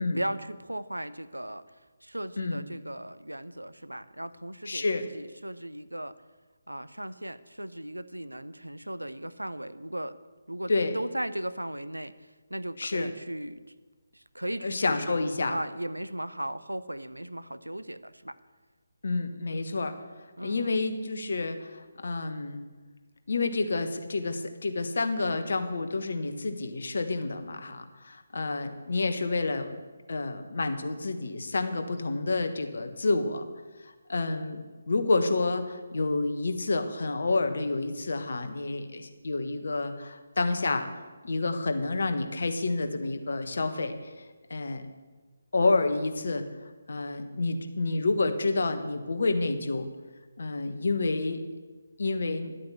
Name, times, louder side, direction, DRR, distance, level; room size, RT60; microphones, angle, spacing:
voice 1, 0.0-1.6 2.0-4.8 5.1-6.1 6.7-10.2 10.5-12.1 12.5-13.6 14.1-15.2 15.5-18.3 20.4-20.7, right 1 dB, 85° right, 14 dB, 0.8 m, -36 dB
voice 2, 4.6-5.0 10.7-10.9 12.8-13.1 14.6-15.5 19.0-19.9 20.4-22.6 23.3-29.7 30.1-33.4 33.8-34.6 34.9-40.9 41.2-44.2 44.5-44.8 45.5-46.5 46.9-49.9 50.4-51.4 52.0-52.5, left 3 dB, 55° left, 8 dB, 1.5 m, -29 dB
12.0 x 8.6 x 8.4 m, 1.3 s
figure-of-eight pair, 150°, 0 cm